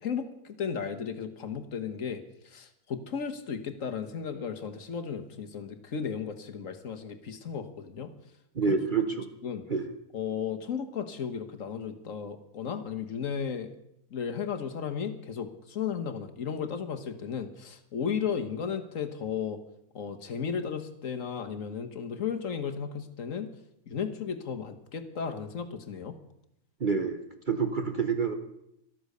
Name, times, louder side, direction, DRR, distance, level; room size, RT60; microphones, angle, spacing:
voice 1, 0.0-8.1 8.7-8.8 9.4-9.7 10.1-13.7 14.1-19.6 19.9-23.5 23.9-26.2, left 7 dB, 60° left, 7 dB, 1.4 m, -34 dB
voice 2, 8.5-9.3 9.7-9.9 26.8-27.2 27.5-28.3, right 5 dB, 40° right, 7 dB, 0.9 m, -27 dB
13.0 x 12.5 x 6.6 m, 0.77 s
omnidirectional pair, 1.7 m